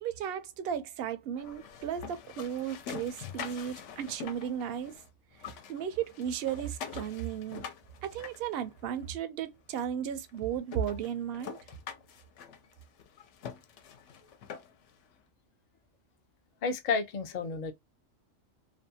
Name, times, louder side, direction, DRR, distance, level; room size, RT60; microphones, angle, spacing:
voice 1, 0.0-4.9 5.7-7.6 8.0-11.6, right 9 dB, 60° right, 0.7 m, -35 dB
sound 1, 1.4-5.1 5.3-9.1 9.8-9.9 10.3-10.4 10.7-14.9, left 7 dB, 70° left, 0.9 m, -45 dB
voice 2, 16.6-17.7, left 4 dB, 55° left, 0.5 m, -31 dB
2.5 x 2.2 x 2.6 m
omnidirectional pair, 1.3 m